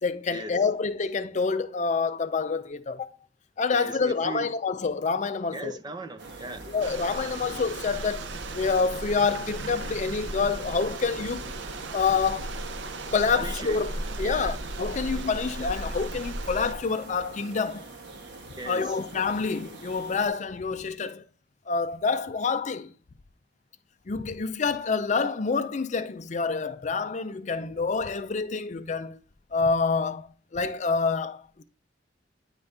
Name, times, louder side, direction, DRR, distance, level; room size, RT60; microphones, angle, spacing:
voice 1, 0.0-3.1 3.6-5.7 6.7-11.5 11.9-12.6 13.1-17.8 18.7-21.2 21.7-22.9 24.1-29.2 29.5-31.6, left 4 dB, 40° left, 0.5 m, -27 dB
voice 2, 3.7-4.5 5.5-6.7 13.3-13.8 14.2-14.6 18.6-19.0, right 2 dB, 25° right, 0.7 m, -37 dB
sound 1, 6.2-20.3, right 2 dB, 70° right, 1.4 m, -44 dB
sound 2, 6.8-16.7, right 2 dB, 90° right, 0.7 m, -36 dB
9.6 x 4.0 x 3.3 m
head